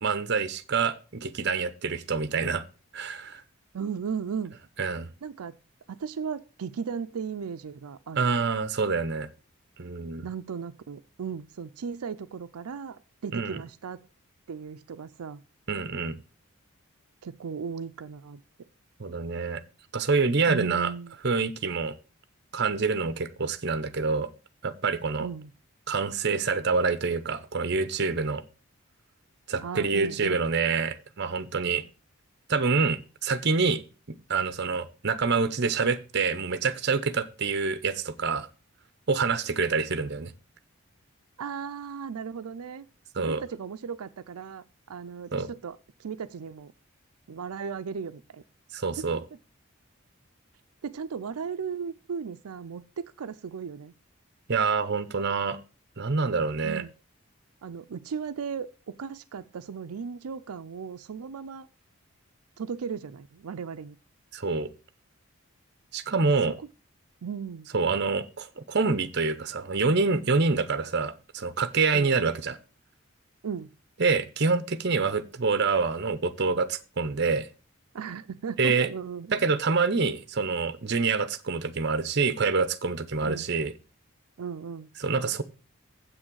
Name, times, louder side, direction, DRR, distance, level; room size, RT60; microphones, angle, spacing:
voice 1, 0.0-2.6 2.9-3.4 4.8-5.1 8.2-9.3 9.8-10.3 13.3-13.6 15.7-16.2 19.0-19.6 19.9-20.9 21.2-21.9 22.5-24.3 24.6-25.3 25.9-28.4 29.5-31.8 32.5-33.8 34.3-38.5 39.1-40.3 43.1-43.4 45.3-45.5 48.7-49.2 54.5-55.6 56.0-56.8 64.3-64.7 65.9-66.6 67.7-72.6 74.0-77.5 78.6-78.9 79.3-83.7 85.0-85.4, right 4 dB, 50° right, 12 dB, 0.8 m, -26 dB
voice 2, 3.7-4.6 5.2-5.6 5.9-8.3 10.2-14.0 14.5-15.4 17.2-18.4 20.5-21.2 25.2-25.5 29.6-30.5 41.4-42.9 43.2-46.7 47.3-48.4 49.0-49.1 50.8-53.9 56.6-56.9 57.6-61.7 62.6-64.0 67.2-67.7 71.9-72.1 73.4-73.7 77.9-79.3 83.2-83.5 84.4-84.9, right 6 dB, 90° right, 10 dB, 0.5 m, -36 dB
7.8 x 6.3 x 6.2 m, 0.33 s
head